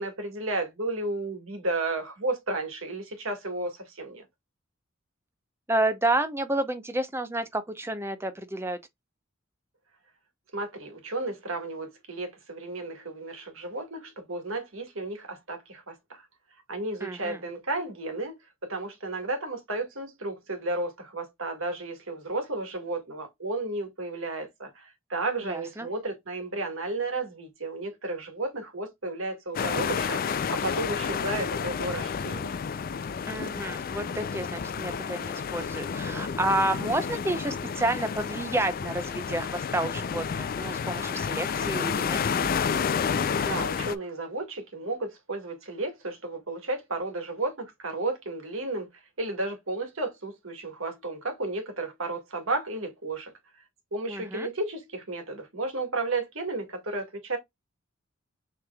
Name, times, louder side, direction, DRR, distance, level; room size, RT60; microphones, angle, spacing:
voice 1, 0.0-4.3 10.5-16.2 16.7-18.3 18.7-32.6 43.4-48.9 49.2-53.3 53.9-57.4, right 2 dB, 80° right, 1.8 m, -33 dB
voice 2, 5.7-8.8 17.0-17.4 25.5-25.9 33.3-42.5 54.1-54.5, right 1 dB, 10° right, 0.7 m, -30 dB
sound 1, 29.5-43.9, left 6 dB, 45° left, 0.4 m, -30 dB
6.1 x 3.3 x 2.3 m
head